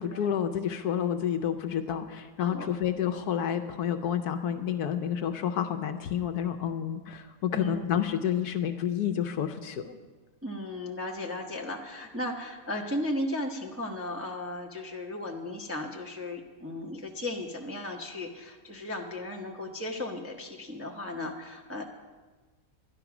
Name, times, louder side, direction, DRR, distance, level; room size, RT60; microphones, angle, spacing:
voice 1, 0.0-10.0, left 9 dB, 70° left, 8 dB, 1.1 m, -29 dB
voice 2, 7.5-7.8 10.4-21.8, left 1 dB, 10° right, 0 dB, 0.7 m, -35 dB
11.0 x 11.0 x 6.0 m, 1.3 s
omnidirectional pair, 1.9 m